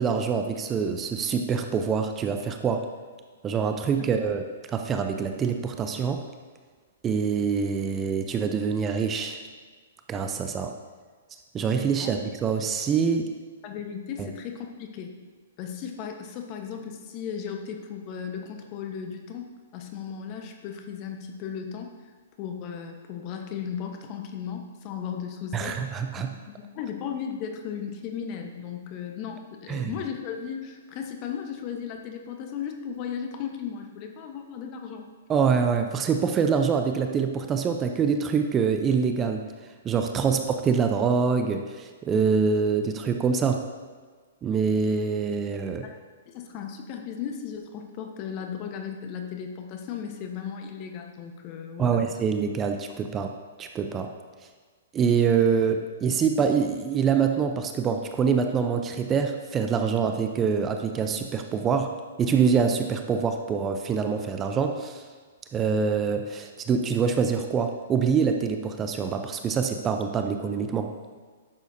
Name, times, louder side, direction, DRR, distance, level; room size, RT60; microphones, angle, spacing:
voice 1, 0.0-2.9 3.4-4.4 4.7-6.2 7.0-9.4 10.1-10.7 11.5-13.3 14.2-14.3 25.5-26.3 29.7-29.9 35.3-39.4 39.8-43.6 44.4-45.9 51.8-54.1 54.9-61.9 62.2-65.0 65.5-70.9, right 6 dB, 20° right, 6 dB, 0.6 m, -25 dB
voice 2, 13.6-15.1 15.6-22.0 22.4-25.8 26.2-35.1 45.8-46.0 46.3-52.0, left 7 dB, 40° left, 4 dB, 1.1 m, -36 dB
10.5 x 7.1 x 2.7 m, 1.5 s
hypercardioid pair, 120°, 0 cm